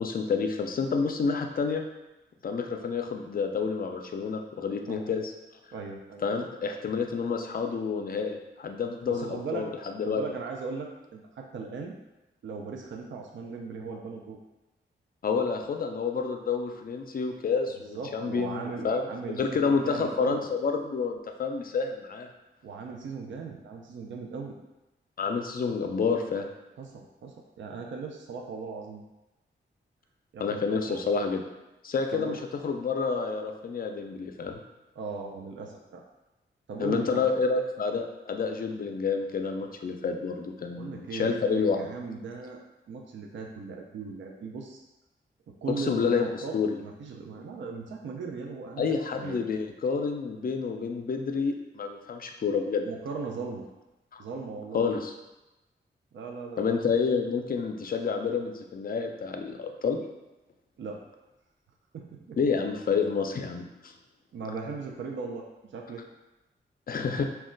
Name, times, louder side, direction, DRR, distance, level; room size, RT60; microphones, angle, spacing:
voice 1, 0.0-1.8 2.4-5.3 6.2-10.2 15.2-19.0 19.4-22.3 25.2-26.5 30.4-31.4 31.8-32.3 32.6-34.6 36.8-41.9 45.8-46.3 46.5-46.8 48.8-52.9 54.1-54.2 54.7-55.1 56.6-60.0 62.4-63.9 66.9-67.2, left 5 dB, 45° left, 4 dB, 0.4 m, -29 dB
voice 2, 5.7-6.3 9.1-9.7 10.0-12.0 12.4-14.4 17.9-20.4 22.6-24.5 26.8-29.0 30.3-31.0 32.1-32.4 35.0-36.0 36.7-37.3 40.8-42.6 42.9-44.8 45.5-49.4 52.8-53.7 54.2-54.9 56.1-56.8 60.8-61.0 61.9-62.4 64.3-66.0, right 4 dB, 65° right, 1 dB, 0.4 m, -38 dB
2.2 x 2.1 x 3.7 m, 1.0 s
cardioid pair, 50°, 20 cm